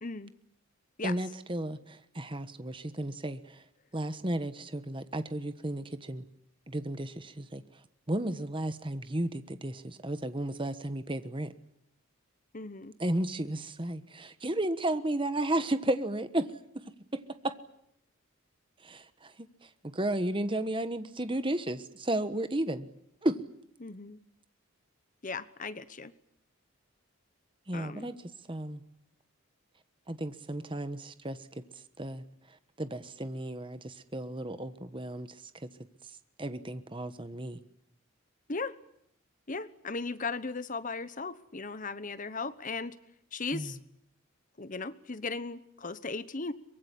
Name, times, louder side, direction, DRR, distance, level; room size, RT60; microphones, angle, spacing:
voice 1, 0.0-0.3 1.0-1.1 12.5-13.0 23.8-24.2 25.2-26.1 27.7-28.1 38.5-38.7 39.5-43.0 43.3-43.8 44.6-46.5, left 3 dB, 35° left, 14 dB, 1.0 m, -37 dB
voice 2, 1.0-3.6 3.9-6.2 6.7-7.6 8.1-11.5 13.0-16.8 17.1-17.6 18.8-22.9 23.2-23.4 27.7-28.2 28.5-28.8 30.1-31.5 32.0-35.7 36.4-37.6 43.5-43.7, right 1 dB, 25° right, 11 dB, 1.3 m, -33 dB
24.0 x 22.0 x 10.0 m, 0.74 s
head